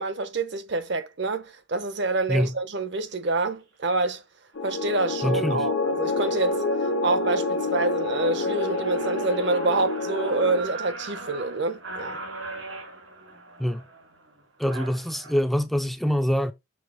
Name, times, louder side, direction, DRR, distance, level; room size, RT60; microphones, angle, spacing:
voice 1, 0.0-4.2 4.6-6.6 7.0-12.2, right 3 dB, 60° right, 0.9 m, -27 dB
sound 1, 3.1-3.3 3.9-4.2 4.7-5.1 5.5-5.6 5.9-15.3, right 2 dB, 75° right, 2.8 m, -40 dB
sound 2, 4.6-10.6, left 2 dB, 85° left, 1.4 m, -27 dB
voice 2, 5.2-5.7 13.6-13.8 14.6-16.5, equal, ahead, 0.4 m, -25 dB
6.5 x 3.4 x 4.9 m
head